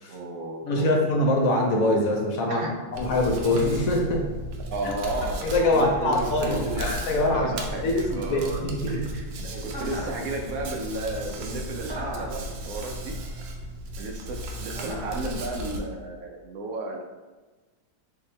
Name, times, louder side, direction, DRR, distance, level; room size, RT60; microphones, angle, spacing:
voice 1, 0.1-1.1 2.5-2.7 4.7-6.9 7.2-8.6 8.9-13.2 14.0-17.0, right 2 dB, 70° right, 2 dB, 0.8 m, -33 dB
voice 2, 0.6-4.3 5.4-7.5 7.8-9.1, left 1 dB, 65° left, 1 dB, 0.9 m, -24 dB
Hands, 2.9-15.8, right 1 dB, 90° right, 1.3 m, -35 dB
Chuckle chortle, 9.7-10.2 11.9-12.4 14.7-15.2, right 1 dB, 15° right, 1.1 m, -37 dB
3.8 x 2.7 x 4.2 m, 1.3 s
omnidirectional pair, 1.9 m